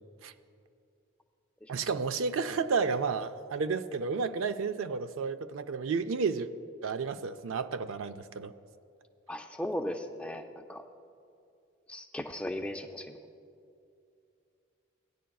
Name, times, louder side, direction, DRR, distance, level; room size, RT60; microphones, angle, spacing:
voice 1, 1.7-6.5 6.8-8.5, right 5 dB, 80° right, 10 dB, 0.4 m, -31 dB
voice 2, 9.3-10.8 11.9-13.2, left 1 dB, 5° left, 5 dB, 0.4 m, -37 dB
17.0 x 10.0 x 2.3 m, 2.5 s
head